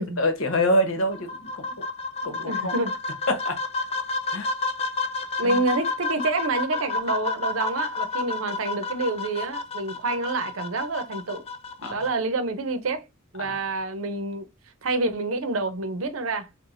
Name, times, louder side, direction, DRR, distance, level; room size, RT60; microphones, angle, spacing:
voice 1, 0.0-1.6 2.2-2.7 3.3-3.6 4.3-4.5 5.4-5.6 11.8-12.0 13.4-13.5, left 1 dB, 75° left, 1.0 m, -25 dB
sound 1, 1.1-12.1, left 3 dB, 30° left, 0.4 m, -30 dB
voice 2, 2.2-2.9 5.4-11.4 11.9-13.0 13.3-14.5 14.8-16.5, right 3 dB, 80° right, 0.7 m, -28 dB
4.7 x 2.2 x 2.5 m
head